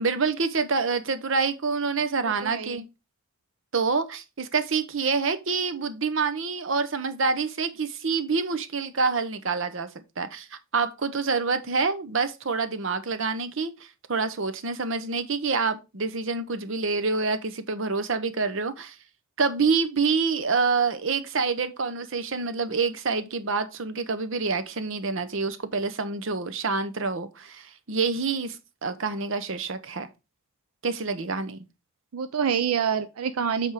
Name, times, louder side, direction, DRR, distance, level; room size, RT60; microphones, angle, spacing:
voice 1, 0.0-2.9 3.7-9.9 10.2-10.5 10.7-18.9 19.4-30.1 30.8-31.7, right 4 dB, 60° right, 0.8 m, -27 dB
voice 2, 2.2-2.8 32.1-33.7, right 7 dB, 85° right, 0.5 m, -27 dB
8.2 x 3.6 x 4.9 m
head